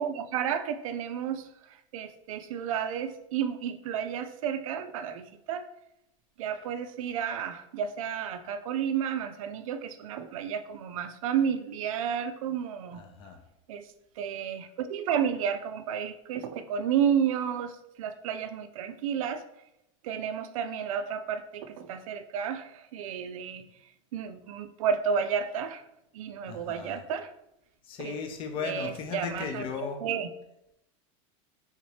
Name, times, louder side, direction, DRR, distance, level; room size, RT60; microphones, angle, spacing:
voice 1, 0.0-5.7 6.4-13.0 13.7-13.9 14.2-19.4 20.0-23.7 24.1-25.8 26.1-27.3 28.0-28.2 28.6-30.3, right 8 dB, 85° right, 9 dB, 0.4 m, -31 dB
voice 2, 12.9-13.4 26.5-27.0 27.9-30.0, left 5 dB, 30° left, 6 dB, 0.5 m, -36 dB
3.6 x 2.8 x 3.1 m, 0.84 s
supercardioid pair, 145°, 17 cm